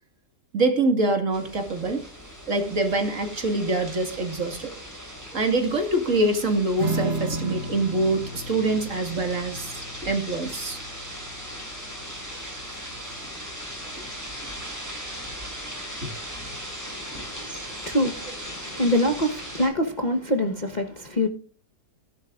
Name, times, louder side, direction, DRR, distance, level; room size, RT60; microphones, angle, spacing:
voice 1, 0.5-2.0 2.5-4.8 5.3-10.8 16.0-16.1 17.1-17.2, right 2 dB, 45° right, 2.3 m, -25 dB
sound 1, 1.3-19.7, equal, 10° right, 7.0 m, -38 dB
Strum, 6.8-13.6, right 2 dB, 65° right, 2.1 m, -35 dB
voice 2, 16.9-21.3, left 1 dB, 30° left, 1.1 m, -26 dB
16.5 x 11.0 x 2.5 m
omnidirectional pair, 1.9 m